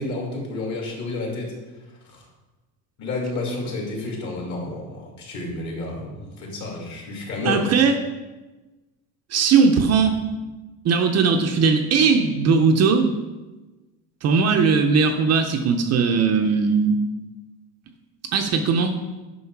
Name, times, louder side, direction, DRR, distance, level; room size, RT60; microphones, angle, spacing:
voice 1, 0.0-1.5 2.1-2.2 3.0-7.8, left 2 dB, 45° left, -1 dB, 2.6 m, -30 dB
voice 2, 7.4-8.0 9.3-10.2 10.8-13.1 14.2-17.0 18.3-18.9, right 5 dB, 40° right, 4 dB, 0.7 m, -19 dB
9.5 x 6.3 x 4.6 m, 1.2 s
cardioid pair, 160°, 41 cm